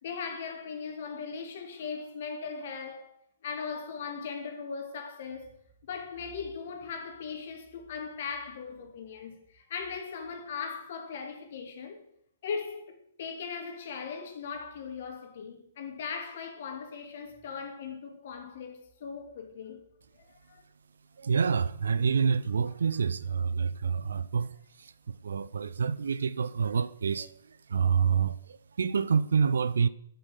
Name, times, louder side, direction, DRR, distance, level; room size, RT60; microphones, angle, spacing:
voice 1, 0.0-3.1 3.4-5.6 5.8-12.0 12.4-19.9 20.2-20.6, left 5 dB, 45° left, 2.5 m, -39 dB
voice 2, 21.2-29.9, right 6 dB, 60° right, 0.6 m, -28 dB
9.3 x 8.1 x 8.1 m
figure-of-eight pair, 120°, 0 cm